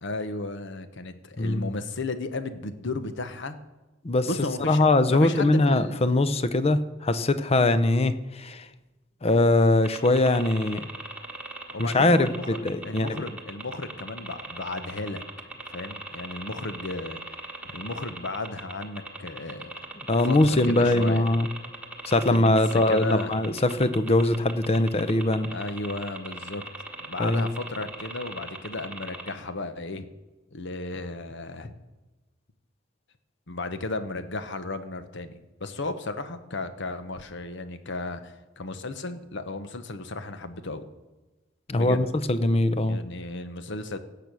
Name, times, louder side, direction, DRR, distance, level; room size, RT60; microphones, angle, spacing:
voice 1, 0.0-3.6 4.3-4.8 5.1-6.2 11.7-12.6 12.8-15.2 15.7-17.2 17.7-19.8 20.2-21.3 22.3-23.3 25.5-26.6 27.0-30.1 30.5-31.8 33.5-40.8 41.7-42.1 42.7-44.0, left 2 dB, 60° left, 10 dB, 1.0 m, -34 dB
voice 2, 1.4-1.7 4.0-4.3 4.7-8.7 9.2-10.9 11.8-13.2 20.1-21.5 22.1-25.5 27.2-27.4 41.7-43.0, left 2 dB, 30° left, 13 dB, 0.6 m, -22 dB
sound 1, 9.8-29.3, right 2 dB, 5° right, 1.3 m, -39 dB
17.0 x 7.0 x 6.2 m, 1.1 s
head